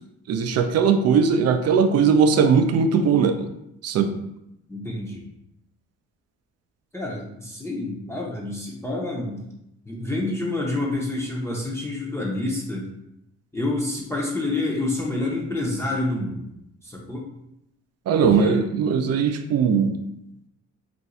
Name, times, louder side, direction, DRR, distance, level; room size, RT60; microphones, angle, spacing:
voice 1, 0.3-3.5 3.8-4.1 18.1-20.0, right 6 dB, 55° right, 8 dB, 0.4 m, -19 dB
voice 2, 4.7-5.2 6.9-9.4 9.9-12.9 13.5-16.5 16.8-17.3 18.1-18.7, left 2 dB, 10° left, -4 dB, 0.6 m, -28 dB
2.5 x 2.3 x 4.0 m, 0.82 s
cardioid pair, 90°, 30 cm